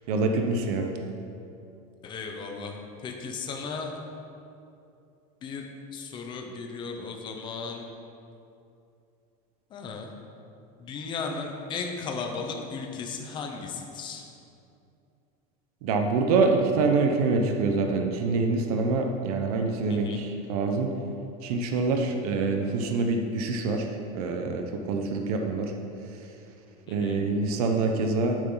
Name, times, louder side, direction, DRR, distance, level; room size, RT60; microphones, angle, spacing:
voice 1, 0.1-0.9 15.8-20.9 21.4-23.9 24.1-25.7 26.9-28.4, right 3 dB, 80° right, 3 dB, 1.1 m, -25 dB
voice 2, 2.0-3.9 5.4-5.7 5.9-7.9 9.7-10.1 10.8-14.3 19.9-20.2 26.9-27.3, left 4 dB, 25° left, 2 dB, 0.9 m, -36 dB
11.5 x 9.4 x 4.0 m, 2.7 s
cardioid pair, 175°, 19 cm